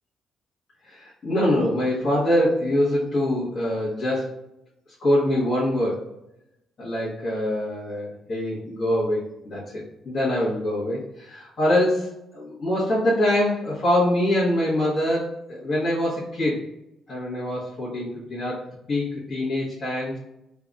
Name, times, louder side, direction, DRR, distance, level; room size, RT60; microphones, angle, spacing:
voice 1, 0.8-4.3 5.0-6.0 6.8-16.7 17.1-20.2, left 1 dB, 50° left, -10 dB, 1.4 m, -24 dB
3.4 x 2.6 x 3.4 m, 0.85 s
cardioid pair, 90°, 0 cm